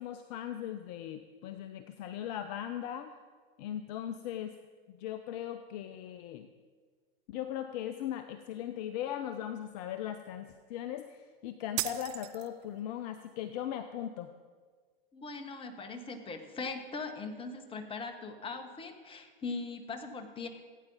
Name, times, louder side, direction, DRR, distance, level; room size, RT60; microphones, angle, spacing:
voice 1, 0.0-3.1 3.6-4.6 4.9-6.5 7.3-14.3, left 10 dB, 45° left, 9 dB, 0.6 m, -39 dB
sound 1, 11.8-12.8, right 17 dB, 45° right, 0.7 m, -36 dB
voice 2, 15.1-20.5, left 4 dB, 20° left, 6 dB, 1.3 m, -40 dB
16.0 x 9.2 x 4.0 m, 1.5 s
hypercardioid pair, 105°, 29 cm